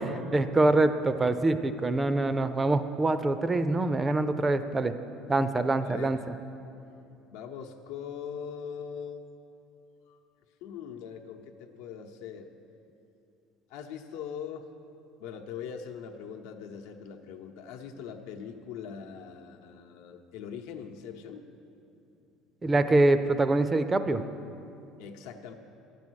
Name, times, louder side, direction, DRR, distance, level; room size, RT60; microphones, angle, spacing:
voice 1, 0.0-4.9 5.3-6.2 22.6-24.2, right 2 dB, 15° right, 11 dB, 0.4 m, -25 dB
voice 2, 5.8-6.2 7.3-9.3 10.1-10.2 10.6-12.5 13.7-14.7 15.2-21.4 25.0-25.5, left 7 dB, 85° left, 4 dB, 0.8 m, -41 dB
10.5 x 8.5 x 6.3 m, 2.7 s
cardioid pair, 150°, 0 cm